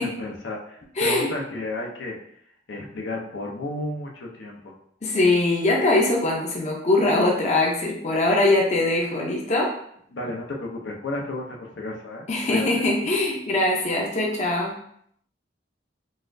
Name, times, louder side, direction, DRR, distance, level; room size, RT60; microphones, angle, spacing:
voice 1, 0.0-2.2 2.7-4.7 10.1-12.8, left 2 dB, 80° left, 0 dB, 0.6 m, -32 dB
voice 2, 1.0-1.3 5.0-9.7 12.3-14.8, left 2 dB, 40° left, -1 dB, 0.6 m, -22 dB
3.9 x 2.4 x 2.5 m, 0.68 s
head